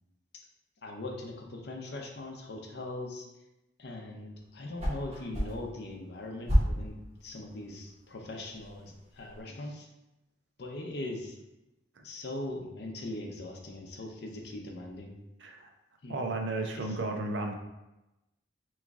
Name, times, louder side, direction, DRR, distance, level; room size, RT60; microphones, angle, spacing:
voice 1, 0.8-3.3 3.8-9.9 10.6-11.4 12.0-15.1 16.0-16.3 16.7-17.0, left 2 dB, 55° left, 1 dB, 0.6 m, -40 dB
sound 1, 4.4-9.4, equal, 35° right, 1.2 m, -33 dB
voice 2, 16.1-17.5, right 2 dB, 65° right, 3 dB, 0.5 m, -33 dB
3.5 x 3.1 x 3.6 m, 0.98 s
head